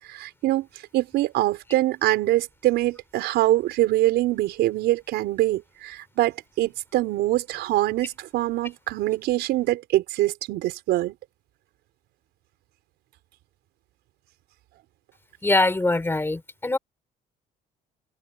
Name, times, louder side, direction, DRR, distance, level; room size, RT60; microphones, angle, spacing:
voice 1, 0.1-0.7 0.9-11.1, right 16 dB, 80° right, 4.9 m, -24 dB
voice 2, 15.4-16.8, left 2 dB, 15° left, 3.4 m, -23 dB
cardioid pair, 110°, 17 cm